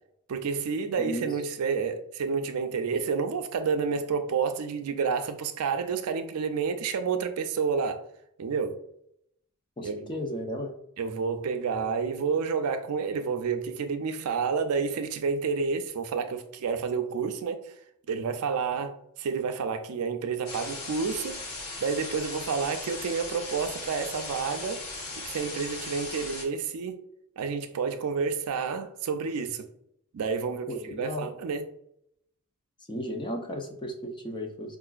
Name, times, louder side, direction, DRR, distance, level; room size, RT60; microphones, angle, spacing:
voice 1, 0.3-8.0 8.4-8.8 9.8-9.9 11.0-17.8 18.1-21.4 21.8-24.8 25.2-27.0 27.4-29.7 30.1-31.7, right 5 dB, 80° right, 0.4 m, -29 dB
voice 2, 1.0-1.3 9.8-10.7 30.7-31.3 32.9-34.8, equal, 20° left, 0.5 m, -34 dB
sound 1, 20.5-26.5, left 3 dB, 80° left, 1.1 m, -38 dB
4.7 x 2.4 x 2.3 m
head